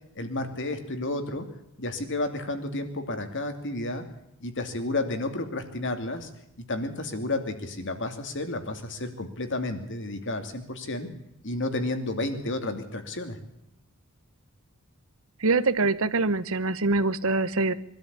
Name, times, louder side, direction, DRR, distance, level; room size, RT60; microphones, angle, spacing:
voice 1, 0.1-1.5 1.8-4.0 4.4-6.3 6.7-11.1 11.4-13.4, left 2 dB, 55° left, 7 dB, 2.7 m, -31 dB
voice 2, 15.4-17.7, right 3 dB, 65° right, 14 dB, 1.1 m, -24 dB
23.5 x 13.0 x 8.3 m, 0.84 s
head